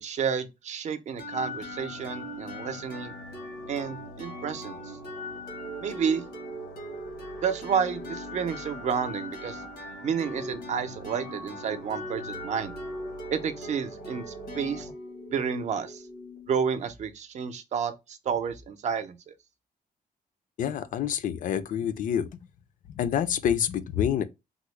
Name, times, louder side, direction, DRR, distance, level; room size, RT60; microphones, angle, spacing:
voice 1, 0.0-3.1 3.7-4.8 5.8-6.2 7.4-9.6 10.0-12.7 13.3-14.9 15.3-16.0 16.5-19.3, right 7 dB, 50° right, 0.5 m, -30 dB
sound 1, 1.2-16.8, left 1 dB, 85° left, 1.0 m, -39 dB
voice 2, 20.6-22.3 22.9-24.2, left 9 dB, 60° left, 0.4 m, -27 dB
3.6 x 2.0 x 3.0 m
cardioid pair, 150°, 15 cm